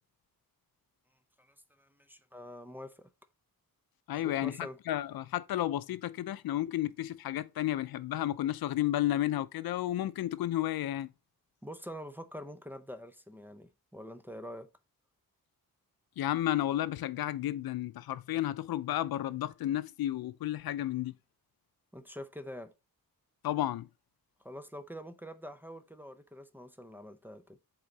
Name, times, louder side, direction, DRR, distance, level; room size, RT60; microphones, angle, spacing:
voice 1, 1.4-3.1 4.2-4.8 11.6-14.7 21.9-22.7 24.4-27.6, equal, 5° right, 0.5 m, -45 dB
voice 2, 4.1-11.1 16.2-21.1 23.4-23.9, left 13 dB, 85° left, 0.5 m, -32 dB
8.0 x 3.7 x 3.9 m
wide cardioid pair, 180°, 36 cm